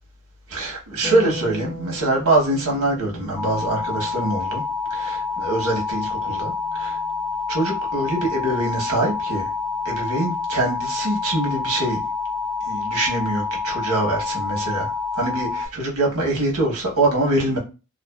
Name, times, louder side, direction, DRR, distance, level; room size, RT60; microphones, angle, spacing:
voice 1, 0.5-4.6 4.9-7.0 7.5-9.5 9.8-12.0 12.7-17.6, right 2 dB, 70° right, 0.9 m, -24 dB
Harp, 1.0-7.5 9.2-10.2, left 1 dB, 55° left, 1.0 m, -39 dB
sound 1, 3.4-15.7, left 4 dB, 15° left, 1.3 m, -27 dB
2.5 x 2.4 x 2.2 m
head